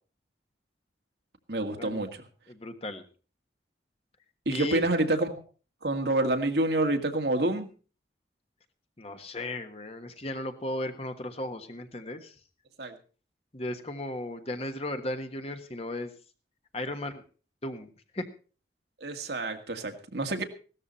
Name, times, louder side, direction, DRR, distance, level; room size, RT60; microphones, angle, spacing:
voice 1, 1.5-2.1 4.5-5.4 5.8-7.7 12.8-13.0 19.0-20.4, right 2 dB, 70° right, 5 dB, 2.0 m, -27 dB
voice 2, 2.5-3.0 4.5-4.8 9.0-12.3 13.5-16.1 16.7-17.2 17.6-17.9 18.1-18.2, left 1 dB, 35° left, 7 dB, 1.4 m, -35 dB
17.0 x 13.0 x 4.2 m, 0.37 s
head